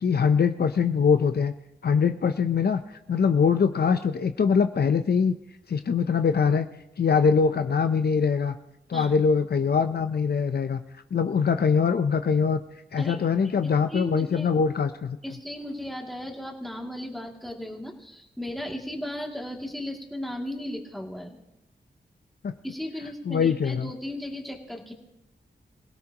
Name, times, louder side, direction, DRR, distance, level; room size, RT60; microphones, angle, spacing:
voice 1, 0.0-1.5 1.8-2.8 3.1-5.4 5.7-6.7 7.0-8.6 8.9-10.8 11.1-12.6 12.9-15.2 22.4-22.5 23.3-23.9, left 6 dB, 60° left, 9 dB, 0.7 m, -23 dB
voice 2, 13.9-14.5 15.2-21.4 22.6-24.9, left 1 dB, ahead, 0 dB, 2.5 m, -36 dB
26.0 x 17.0 x 3.0 m, 0.85 s
wide cardioid pair, 90°, 18 cm